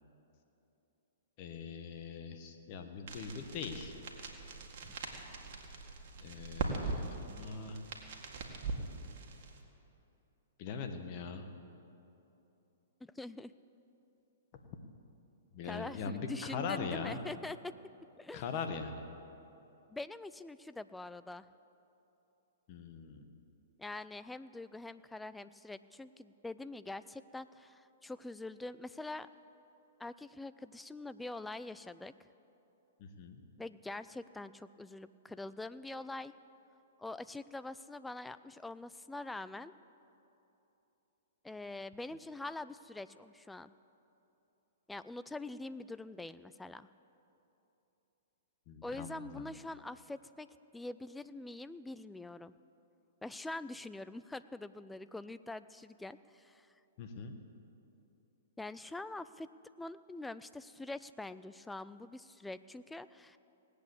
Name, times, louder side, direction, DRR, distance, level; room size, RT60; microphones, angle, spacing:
voice 1, 1.4-3.9 6.2-7.8 10.6-11.5 14.6-14.8 15.5-17.2 18.3-19.1 22.7-23.3 33.0-33.4 48.7-49.5 57.0-57.3, left 5 dB, 45° left, 6 dB, 1.5 m, -41 dB
sound 1, 3.1-9.6, right 4 dB, 55° right, 2.0 m, -41 dB
voice 2, 13.0-13.5 15.6-17.8 18.2-18.4 19.9-21.5 23.8-29.3 30.0-32.1 33.6-36.3 37.0-39.7 41.4-43.7 44.9-46.9 48.8-50.5 50.7-52.5 53.2-56.7 58.6-59.5 59.8-63.4, left 2 dB, 5° left, 14 dB, 0.4 m, -44 dB
18.5 x 8.4 x 8.1 m, 3.0 s
hypercardioid pair, 120°, 0 cm